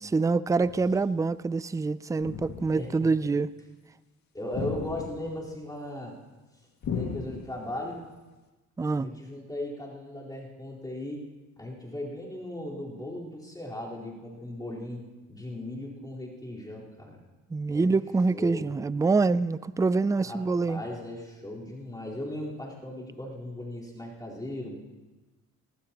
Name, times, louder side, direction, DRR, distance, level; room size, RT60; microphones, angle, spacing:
voice 1, 0.0-3.5 8.8-9.1 17.5-20.8, right 4 dB, 10° right, 0.4 m, -26 dB
sound 1, 0.6-1.0 2.2-2.9 4.5-5.5 6.8-7.8, left 6 dB, 65° left, 2.2 m, -36 dB
voice 2, 2.7-3.1 4.3-6.2 6.9-8.0 8.9-11.2 11.6-15.0 15.3-17.2 17.7-17.9 18.3-18.7 20.2-24.8, left 1 dB, 15° left, 4.3 m, -37 dB
20.5 x 19.0 x 3.0 m
cardioid pair, 90°, 30 cm